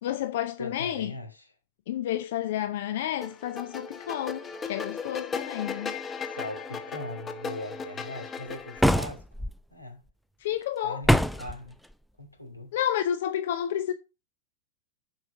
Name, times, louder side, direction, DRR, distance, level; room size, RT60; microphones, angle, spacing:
voice 1, 0.0-1.1 1.9-5.9 10.4-11.0 12.7-13.9, left 11 dB, 55° left, 0.6 m, -30 dB
voice 2, 0.6-1.5 5.9-10.0 10.8-11.8 12.2-12.7, left 1 dB, 85° left, 2.4 m, -40 dB
sound 1, 3.2-8.9, left 5 dB, 20° left, 1.1 m, -37 dB
sound 2, 8.8-9.5 11.0-11.6, equal, ahead, 0.5 m, -23 dB
7.4 x 5.8 x 5.2 m
figure-of-eight pair, 90°, 0 cm